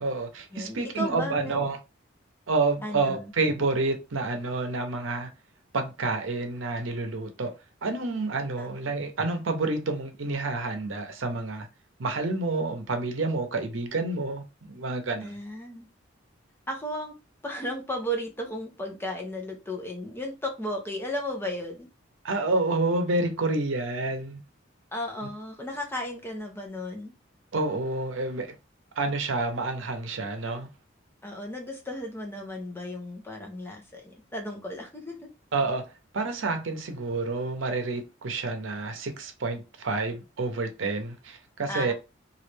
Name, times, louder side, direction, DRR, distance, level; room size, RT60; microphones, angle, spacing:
voice 1, 0.0-1.8 2.5-5.3 5.7-7.5 7.8-11.7 12.0-15.3 22.2-24.4 27.5-28.5 29.0-30.7 35.5-35.8 36.1-41.9, right 3 dB, 80° right, 0.7 m, -29 dB
voice 2, 0.5-1.7 2.8-3.3 8.6-8.7 15.2-15.9 16.7-17.1 17.4-21.9 24.9-27.1 31.2-35.2 41.7-41.9, equal, 10° left, 0.7 m, -34 dB
3.1 x 2.5 x 3.3 m
head